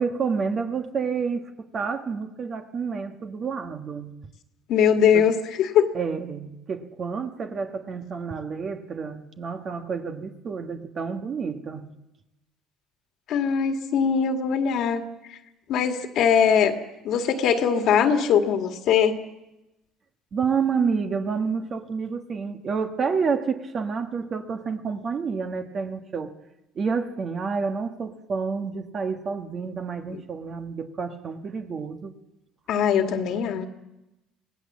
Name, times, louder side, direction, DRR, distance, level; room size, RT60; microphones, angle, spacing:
voice 1, 0.0-4.1 5.9-11.9 20.3-26.3 26.7-32.1, right 5 dB, 35° right, 6 dB, 1.4 m, -29 dB
voice 2, 4.7-5.9 13.3-15.0 15.7-16.7 17.0-19.1 30.1-30.2 32.7-33.7, left 7 dB, 60° left, 6 dB, 1.9 m, -21 dB
25.0 x 18.0 x 7.4 m, 0.95 s
cardioid pair, 130°, 0 cm